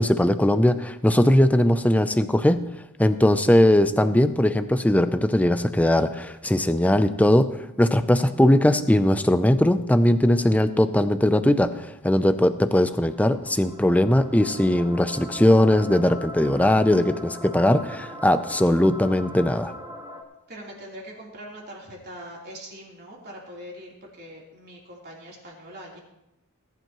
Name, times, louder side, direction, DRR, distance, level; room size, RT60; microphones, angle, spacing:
voice 1, 0.0-2.6 3.0-19.7, left 1 dB, 5° left, 10 dB, 0.5 m, -20 dB
sound 1, 13.0-20.2, equal, 20° right, 1.6 m, -40 dB
voice 2, 20.5-26.0, equal, 45° right, -3 dB, 3.5 m, -42 dB
19.0 x 11.0 x 3.0 m, 0.89 s
head